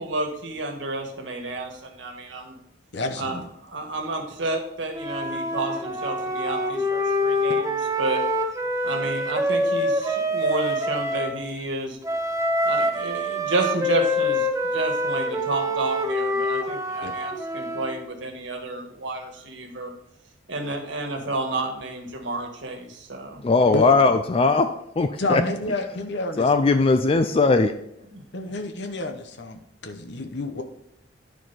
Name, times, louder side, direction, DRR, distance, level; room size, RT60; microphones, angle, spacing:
voice 1, 0.0-2.5 3.1-8.2 8.8-12.0 12.6-19.9 20.5-23.7 28.1-28.2, right 2 dB, 75° right, 2 dB, 1.6 m, -31 dB
voice 2, 2.9-3.4 17.0-17.1 23.7-23.9 25.2-26.5 28.3-30.6, left 2 dB, 65° left, 7 dB, 0.9 m, -29 dB
Wind instrument woodwind instrument, 4.9-11.3 12.0-18.1, equal, 15° right, 0.8 m, -25 dB
voice 3, 23.4-25.4 26.4-27.7, left 3 dB, 30° left, 9 dB, 0.4 m, -19 dB
10.0 x 4.6 x 4.1 m, 0.81 s
head